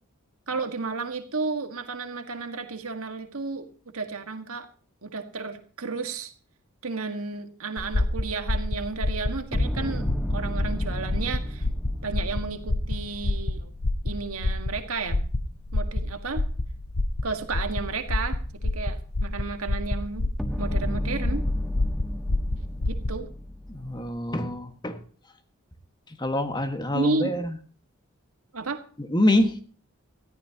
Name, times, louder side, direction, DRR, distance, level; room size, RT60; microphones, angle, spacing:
voice 1, 0.5-3.7 3.9-4.7 5.0-6.3 6.8-11.7 12.0-13.7 14.0-15.2 15.7-16.4 17.2-20.3 20.6-21.4 22.9-23.3 26.9-27.3 28.5-28.8, right 4 dB, 80° right, 6 dB, 1.7 m, -32 dB
sound 1, 7.8-23.2, left 2 dB, 80° left, 1.1 m, -28 dB
sound 2, 9.5-13.8 20.4-24.2, left 1 dB, ahead, 1.5 m, -33 dB
voice 2, 23.7-25.0 26.2-27.5 29.1-29.5, left 1 dB, 20° left, 7 dB, 1.6 m, -25 dB
20.0 x 14.0 x 2.9 m, 0.42 s
head